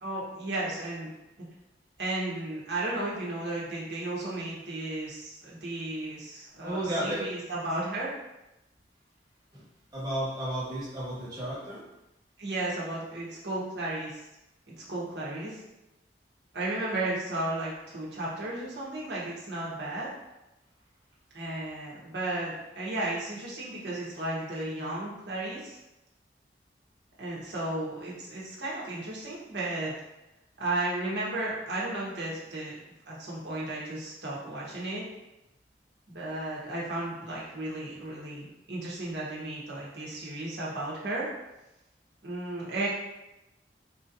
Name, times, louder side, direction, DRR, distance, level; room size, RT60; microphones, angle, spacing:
voice 1, 0.0-1.1 1.4-1.5 2.0-8.1 12.4-14.2 14.7-15.6 16.5-20.1 21.3-25.8 27.2-29.9 30.6-35.0 36.1-41.3 42.2-42.9, right 2 dB, 75° right, -6 dB, 1.3 m, -34 dB
voice 2, 6.6-7.3 9.5-9.6 9.9-11.8, right 1 dB, 20° right, -8 dB, 1.3 m, -32 dB
4.7 x 2.8 x 2.6 m, 0.94 s
head